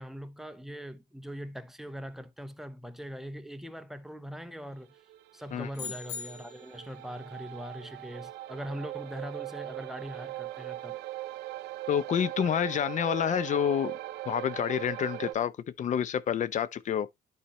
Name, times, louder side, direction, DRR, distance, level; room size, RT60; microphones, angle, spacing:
voice 1, 0.0-5.0 5.3-11.0, equal, ahead, 0.9 m, -41 dB
sound 1, 5.0-15.3, right 16 dB, 85° right, 0.6 m, -40 dB
sound 2, 5.7-6.9, left 6 dB, 75° left, 1.7 m, -40 dB
voice 2, 11.9-13.9 14.3-15.5 15.8-17.1, left 9 dB, 45° left, 0.7 m, -28 dB
11.5 x 4.3 x 3.1 m
cardioid pair, 110°, 17 cm